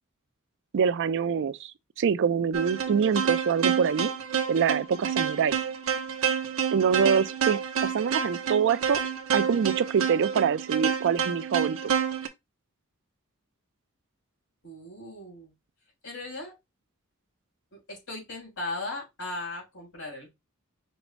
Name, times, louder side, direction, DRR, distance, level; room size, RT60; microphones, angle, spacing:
voice 1, 0.7-1.7 2.0-4.1 4.5-5.6 6.7-9.0 9.3-11.9, right 7 dB, 60° right, 0.4 m, -25 dB
sound 1, 2.5-12.3, right 7 dB, 85° right, 0.7 m, -29 dB
voice 2, 14.6-15.5 16.0-16.5 17.7-20.3, left 2 dB, 90° left, 3.4 m, -37 dB
5.3 x 2.0 x 4.5 m
head